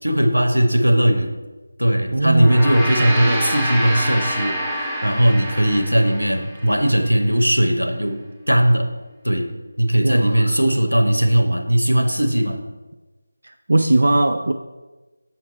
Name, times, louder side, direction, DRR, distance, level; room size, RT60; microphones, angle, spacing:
voice 1, 0.0-1.3 1.8-9.0 9.2-12.6, right 1 dB, 85° right, 5 dB, 0.9 m, -18 dB
voice 2, 2.1-2.6 10.0-10.6 13.4-14.5, right 2 dB, 55° right, 6 dB, 0.3 m, -19 dB
Gong, 2.3-6.9, equal, 5° right, 0.5 m, -27 dB
7.1 x 4.5 x 4.1 m, 1.2 s
figure-of-eight pair, 160°, 0 cm